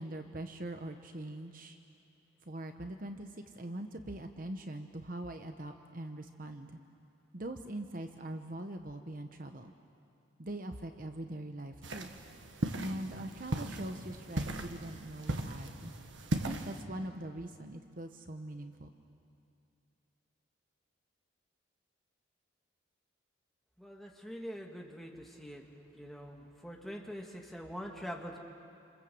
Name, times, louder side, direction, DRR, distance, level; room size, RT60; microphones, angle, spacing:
voice 1, 0.0-1.8 2.4-6.8 7.3-9.7 10.4-12.1 12.8-15.9 16.3-18.9, right 1 dB, 45° right, 6 dB, 1.1 m, -42 dB
sound 1, 11.8-16.8, right 1 dB, 75° right, 1.6 m, -37 dB
voice 2, 23.8-25.6 25.9-28.4, equal, ahead, 0 dB, 2.2 m, -44 dB
28.5 x 27.0 x 7.8 m, 2.6 s
head